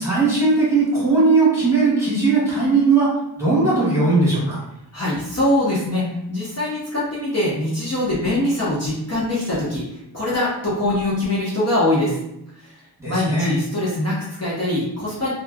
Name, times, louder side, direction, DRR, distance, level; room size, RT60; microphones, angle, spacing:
voice 1, 0.0-3.1 3.4-4.6 13.0-13.5, right 3 dB, 5° right, -9 dB, 1.4 m, -18 dB
voice 2, 4.9-12.2 12.6-12.7 13.1-15.3, left 1 dB, 40° left, -8 dB, 0.9 m, -23 dB
3.0 x 2.4 x 2.3 m, 0.82 s
wide cardioid pair, 75°, 40 cm